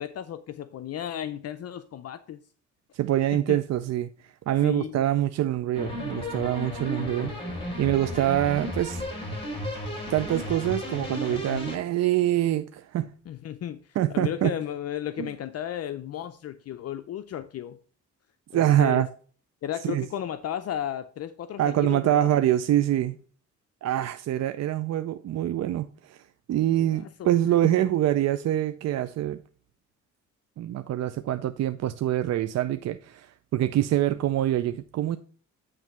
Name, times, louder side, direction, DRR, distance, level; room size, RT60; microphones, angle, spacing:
voice 1, 0.0-2.4 3.3-3.6 4.6-5.0 13.3-17.8 18.5-19.0 19.6-22.3 26.7-27.3, left 10 dB, 55° left, 0.5 m, -34 dB
voice 2, 2.9-7.3 7.8-9.0 10.1-13.1 14.0-14.5 18.5-19.1 19.8-20.0 21.6-23.2 23.8-26.2 26.5-29.4 30.6-35.2, right 12 dB, 60° right, 0.5 m, -25 dB
sound 1, 5.7-11.8, left 1 dB, 15° left, 3.4 m, -34 dB
9.0 x 3.3 x 5.9 m
cardioid pair, 90°, 30 cm